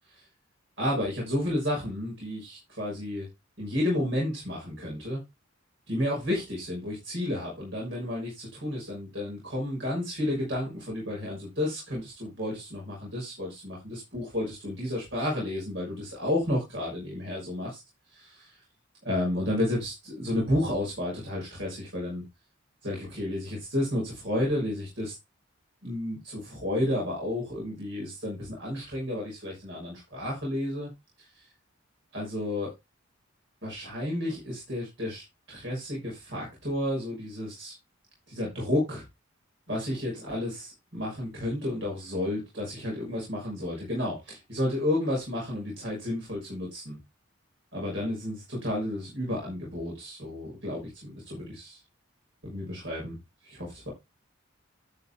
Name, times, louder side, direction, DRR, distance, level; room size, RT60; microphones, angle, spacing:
voice 1, 0.8-3.3 3.6-5.2 5.9-17.8 18.1-18.6 19.0-22.2 22.8-25.1 25.8-30.9 31.2-31.4 32.1-32.7 33.6-37.7 38.3-39.0 39.7-47.0 47.7-51.8 52.4-53.2 53.4-53.9, left 1 dB, 60° right, -3 dB, 6.1 m, -31 dB
12.5 x 5.8 x 3.6 m, 0.23 s
head